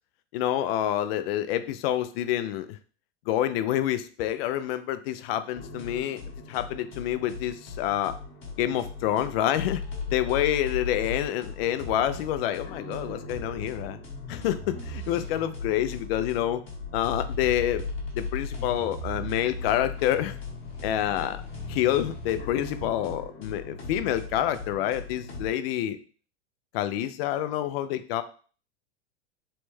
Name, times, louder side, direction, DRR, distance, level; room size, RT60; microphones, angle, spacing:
voice 1, 0.3-2.8 3.3-6.2 6.5-8.1 8.6-9.8 10.1-14.0 14.3-16.6 16.9-17.9 18.1-20.4 20.8-21.4 21.7-26.0 26.7-28.2, left 12 dB, 60° left, 12 dB, 0.4 m, -27 dB
sound 1, 5.5-25.5, left 3 dB, 35° left, 1.0 m, -37 dB
3.2 x 2.1 x 3.1 m, 0.40 s
hypercardioid pair, 105°, 35 cm